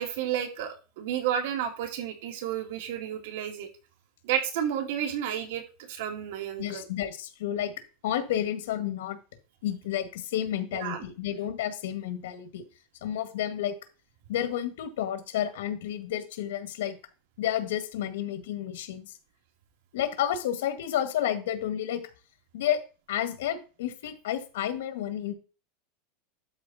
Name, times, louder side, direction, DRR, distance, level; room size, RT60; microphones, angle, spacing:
voice 1, 0.0-3.7 4.2-5.6 5.9-6.8 10.7-11.0, right 9 dB, 65° right, 4 dB, 2.3 m, -31 dB
voice 2, 6.6-7.7 8.0-9.2 9.6-12.6 13.0-13.8 14.3-17.0 17.4-19.1 19.9-22.0 22.5-22.8 23.1-25.3, left 11 dB, 85° left, 10 dB, 1.7 m, -31 dB
12.0 x 4.3 x 4.1 m, 0.33 s
supercardioid pair, 165°, 0 cm